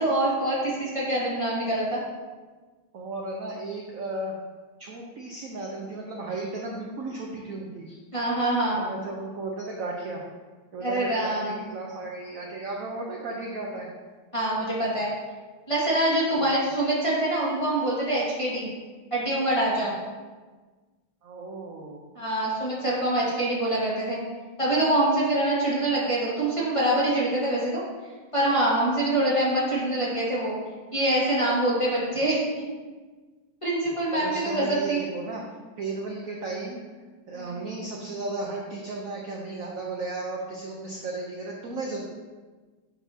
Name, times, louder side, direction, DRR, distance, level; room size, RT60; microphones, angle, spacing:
voice 1, 0.0-2.0 8.1-8.8 10.8-11.6 14.3-15.1 15.7-18.7 19.1-19.9 22.1-24.2 24.6-27.8 28.3-30.5 30.9-32.4 33.6-35.0 37.3-37.6, right 1 dB, 15° left, -7 dB, 1.5 m, -25 dB
voice 2, 2.9-4.3 4.8-8.0 8.8-10.2 10.7-13.9 16.3-16.6 21.2-22.0 34.1-35.4 35.8-36.8 37.3-42.0, right 2 dB, 65° right, -1 dB, 0.8 m, -34 dB
8.0 x 5.6 x 2.8 m, 1.4 s
omnidirectional pair, 2.3 m